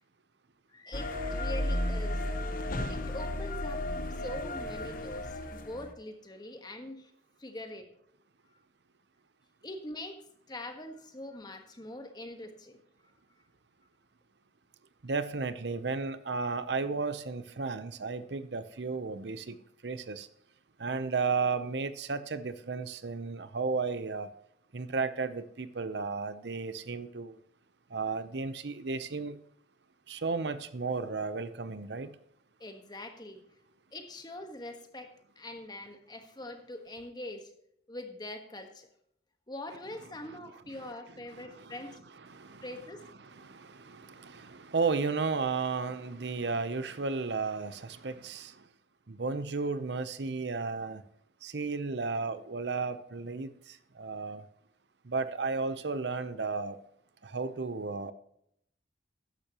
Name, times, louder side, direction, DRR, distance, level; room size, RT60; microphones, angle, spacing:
voice 1, 0.7-2.3 2.9-3.9 4.2-7.1 7.4-7.9 9.6-10.2 10.5-12.8 32.6-33.4 33.9-37.5 37.9-38.9 39.5-41.9 42.6-43.0, left 1 dB, 25° left, 6 dB, 1.4 m, -43 dB
sound 1, 0.9-5.9, left 1 dB, 50° left, 1.0 m, -34 dB
voice 2, 15.0-19.6 19.8-20.3 20.8-24.3 24.7-27.4 27.9-29.4 30.1-32.1 40.8-40.9 41.3-42.7 43.2-48.6 49.1-51.0 51.4-54.4 55.0-56.8 57.2-58.1, right 4 dB, 70° right, 13 dB, 0.8 m, -34 dB
13.5 x 10.0 x 3.0 m, 0.72 s
head